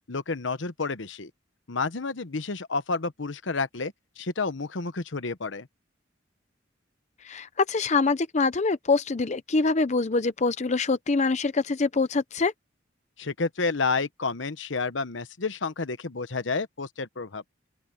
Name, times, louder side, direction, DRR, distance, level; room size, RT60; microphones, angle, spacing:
voice 1, 0.1-1.3 1.7-5.7 13.2-17.4, left 4 dB, 75° left, 1.1 m, -30 dB
voice 2, 7.2-12.5, left 3 dB, 35° left, 0.6 m, -24 dB
open air
head